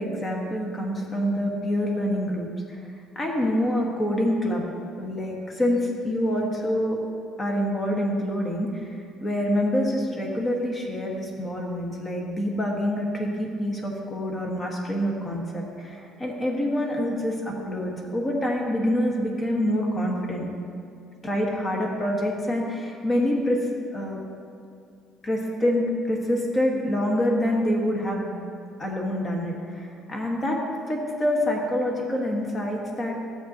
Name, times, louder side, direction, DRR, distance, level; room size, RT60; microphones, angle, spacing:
voice 1, 0.0-2.8 3.1-4.7 5.0-7.0 7.4-20.5 21.2-23.7 23.9-24.2 25.2-28.4 28.8-30.6 30.9-33.2, equal, 25° left, 0 dB, 1.4 m, -26 dB
13.5 x 7.9 x 2.9 m, 2.5 s
cardioid pair, 140°, 0 cm